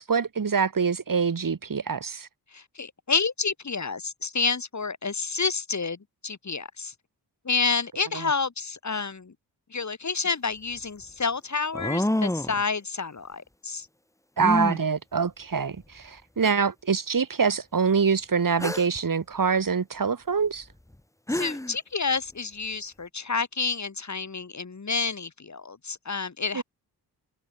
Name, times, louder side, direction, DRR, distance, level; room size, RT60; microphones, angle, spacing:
voice 1, 0.0-2.3 14.4-20.6 26.5-26.6, right 5 dB, 55° right, 4.3 m, -25 dB
voice 2, 2.5-6.9 7.4-9.3 9.7-13.9 21.3-26.6, left 4 dB, 45° left, 5.6 m, -29 dB
sound 1, 10.3-10.4 11.7-12.6 14.4-14.8 15.8-15.9 16.4-16.5 18.6-19.0 20.9-21.0 21.3-21.8, left 1 dB, 10° left, 1.8 m, -27 dB
wide cardioid pair, 120°, 40 cm